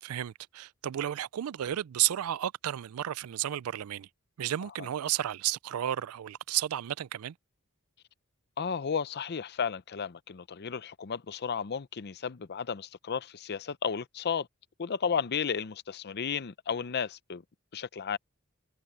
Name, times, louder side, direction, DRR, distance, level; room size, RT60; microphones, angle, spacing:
voice 1, 0.0-4.1 4.4-7.3, right 12 dB, 85° right, 0.4 m, -32 dB
voice 2, 8.6-14.5 14.8-17.4 17.7-18.2, left 6 dB, 50° left, 0.6 m, -33 dB
head